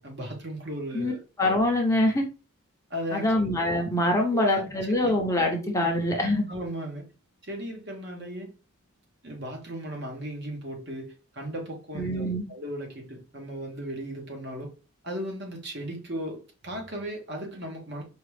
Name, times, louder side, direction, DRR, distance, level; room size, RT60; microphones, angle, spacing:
voice 1, 0.0-1.2 2.9-3.5 4.3-4.6 4.9-5.1 5.8-5.9 6.5-7.1 7.4-8.5 9.2-14.7 15.0-18.0, equal, 50° right, 1.2 m, -36 dB
voice 2, 1.4-2.2 3.1-6.5 11.9-12.4, left 1 dB, 15° left, 0.7 m, -24 dB
4.8 x 2.4 x 3.3 m
head